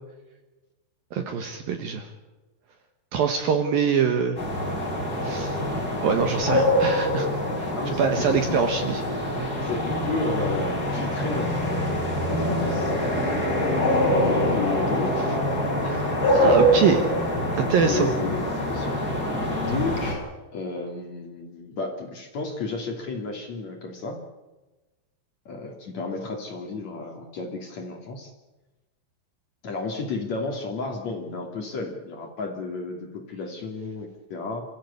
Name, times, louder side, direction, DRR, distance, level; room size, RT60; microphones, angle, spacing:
voice 1, 1.1-2.1 3.1-4.4 5.2-5.6 6.0-7.3 7.6-9.0 15.8-17.0 17.5-18.1, right 6 dB, 65° right, 7 dB, 2.5 m, -24 dB
sound 1, 4.4-20.1, equal, 20° left, 6.4 m, -25 dB
voice 2, 7.8-8.6 9.6-12.9 13.9-15.1 16.3-16.9 17.9-19.0 19.7-20.2 20.5-24.2 25.4-28.3 29.6-34.6, left 4 dB, 45° left, 3 dB, 3.1 m, -32 dB
27.5 x 15.0 x 8.3 m, 1.1 s
omnidirectional pair, 5.5 m